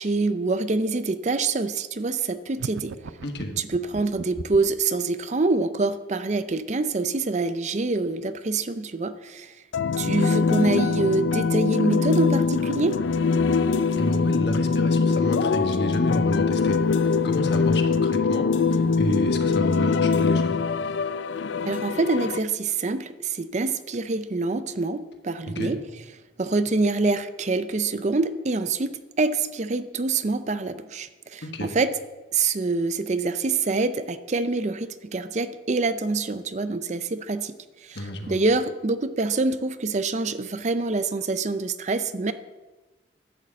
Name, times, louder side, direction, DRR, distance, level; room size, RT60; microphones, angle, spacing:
voice 1, 0.0-3.0 3.6-9.5 10.0-13.0 21.7-25.8 26.4-31.9 32.3-37.6 37.8-42.3, right 3 dB, 40° right, 12 dB, 0.5 m, -26 dB
sound 1, 2.6-4.8, right 4 dB, 90° right, 0.5 m, -37 dB
voice 2, 3.2-3.6 13.9-20.6 25.5-25.7 31.4-31.7 37.9-38.4, left 1 dB, 65° left, 5 dB, 1.4 m, -30 dB
sound 2, 9.7-22.4, left 4 dB, 80° left, 0.4 m, -23 dB
11.0 x 6.5 x 7.4 m, 1.2 s
head